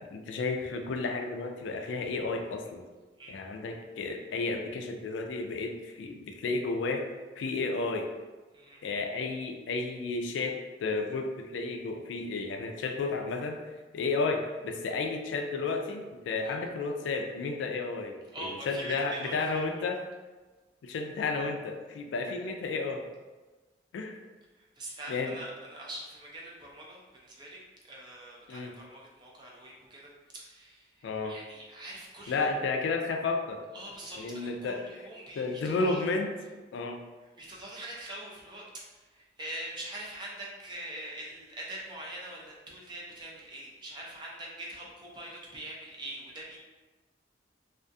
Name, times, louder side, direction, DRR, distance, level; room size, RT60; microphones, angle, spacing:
voice 1, 0.0-2.8 3.3-7.0 7.4-8.1 8.8-13.6 13.9-20.0 20.8-23.0 23.9-24.2 25.1-25.4 28.5-28.7 31.0-31.4 32.3-33.6 34.2-34.8 35.4-36.3 36.7-37.0, left 3 dB, 85° left, 4 dB, 0.3 m, -32 dB
voice 2, 18.3-19.8 24.6-27.6 27.8-32.5 33.7-36.1 37.4-38.6 38.9-46.6, right 1 dB, 25° right, -4 dB, 0.4 m, -43 dB
2.4 x 2.3 x 2.5 m, 1.3 s
head